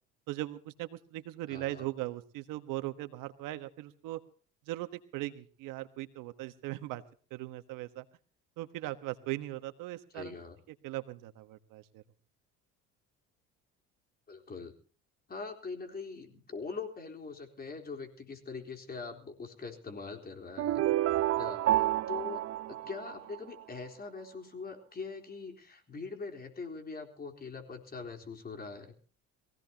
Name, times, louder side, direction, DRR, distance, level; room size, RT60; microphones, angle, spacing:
voice 1, 0.3-4.2 4.7-7.0 7.3-8.0 8.6-10.4 10.8-12.0, right 16 dB, 75° right, 10 dB, 1.4 m, -39 dB
voice 2, 1.5-1.9 10.1-10.6 14.3-14.7 15.3-20.8 21.4-22.4 22.7-28.9, left 4 dB, 30° left, 4 dB, 3.9 m, -42 dB
sound 1, 20.6-23.6, right 14 dB, 50° right, 0.7 m, -29 dB
23.0 x 16.5 x 2.9 m, 0.41 s
cardioid pair, 105°, 32 cm